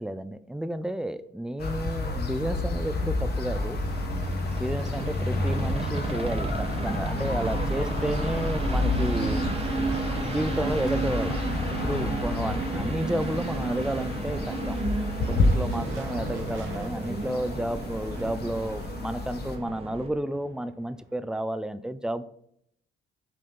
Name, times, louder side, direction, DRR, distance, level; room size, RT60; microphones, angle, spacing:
voice 1, 0.0-3.8 4.6-9.4 10.2-11.4 11.7-14.8 15.3-22.2, right 1 dB, 5° right, 13 dB, 0.4 m, -31 dB
sound 1, 1.6-19.6, left 2 dB, 55° left, 1.1 m, -30 dB
sound 2, 2.9-20.1, right 3 dB, 30° right, 0.9 m, -33 dB
sound 3, 15.2-21.3, right 3 dB, 80° right, 1.1 m, -43 dB
6.3 x 4.3 x 3.9 m, 0.72 s
cardioid pair, 90°, 20 cm